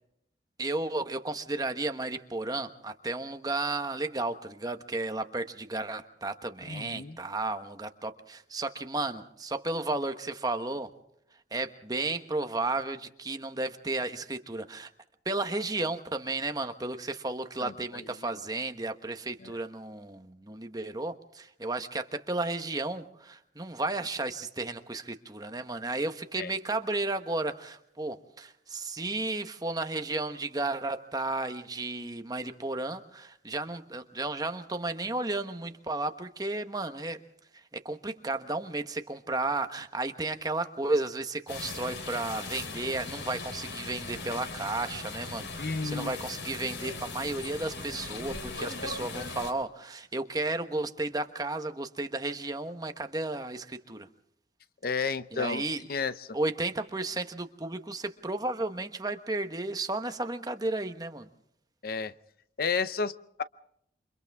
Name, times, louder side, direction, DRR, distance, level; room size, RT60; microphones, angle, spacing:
voice 1, 0.6-10.9 11.5-14.9 15.2-37.2 37.5-54.1 55.3-55.8 56.3-61.3, right 2 dB, 20° right, 7 dB, 1.2 m, -33 dB
voice 2, 6.7-7.2 17.6-18.0 19.4-19.6 26.4-26.5 45.6-46.2 54.8-55.6 55.9-56.4 61.8-62.1 62.6-63.4, left 5 dB, 55° left, 14 dB, 0.7 m, -32 dB
sound 1, 41.5-49.5, left 3 dB, 85° left, 3.5 m, -39 dB
28.5 x 25.5 x 3.6 m, 0.73 s
head